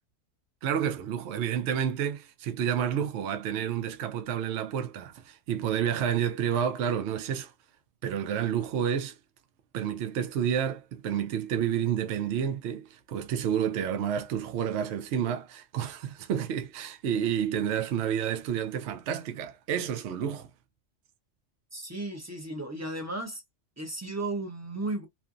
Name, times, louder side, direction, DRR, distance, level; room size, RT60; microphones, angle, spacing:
voice 1, 0.6-7.5 8.0-9.2 9.7-20.5, right 9 dB, 70° right, 0.8 m, -30 dB
voice 2, 21.7-23.4 23.8-25.1, right 2 dB, 20° right, 0.5 m, -34 dB
2.7 x 2.5 x 2.4 m
omnidirectional pair, 1.3 m